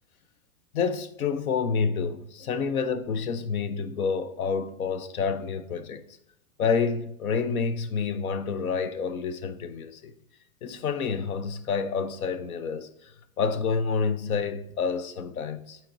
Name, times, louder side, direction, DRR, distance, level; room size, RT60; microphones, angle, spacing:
voice 1, 0.7-6.0 6.6-10.1 10.6-12.9 13.4-15.8, left 5 dB, 85° left, 0.8 m, -28 dB
8.6 x 4.4 x 2.6 m
hypercardioid pair, 140°, 42 cm